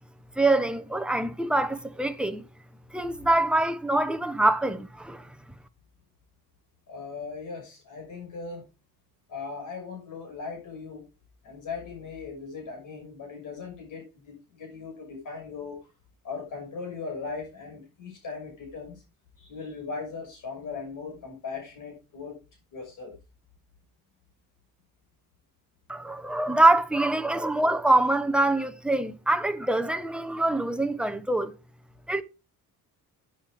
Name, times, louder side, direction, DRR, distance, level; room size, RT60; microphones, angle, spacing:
voice 1, 0.4-2.5 2.9-5.3 25.9-31.5 32.1-32.2, right 2 dB, 5° right, 0.9 m, -24 dB
voice 2, 6.9-8.7 9.3-11.0 11.4-15.8 16.2-19.0 19.4-22.4 22.7-23.1, left 4 dB, 60° left, 6.2 m, -38 dB
12.5 x 9.4 x 3.6 m
cardioid pair, 140°, 35 cm